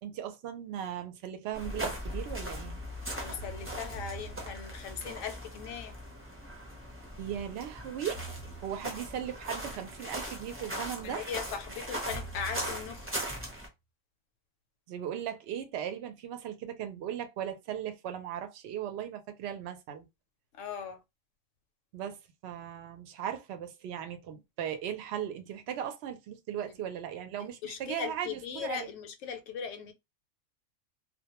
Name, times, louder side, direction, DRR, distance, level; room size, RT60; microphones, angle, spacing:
voice 1, 0.0-2.8 7.2-8.2 8.6-11.2 14.9-20.1 21.9-28.9, right 9 dB, 65° right, 0.7 m, -38 dB
sound 1, 0.8-0.9 3.4-5.0 8.1-9.2 12.1-13.4, right 4 dB, 45° left, 0.4 m, -46 dB
sound 2, 1.5-13.7, equal, 15° right, 0.5 m, -39 dB
voice 2, 3.1-5.9 11.0-13.3 20.5-21.0 27.4-29.9, left 7 dB, 75° left, 0.9 m, -39 dB
2.2 x 2.1 x 2.8 m
omnidirectional pair, 1.3 m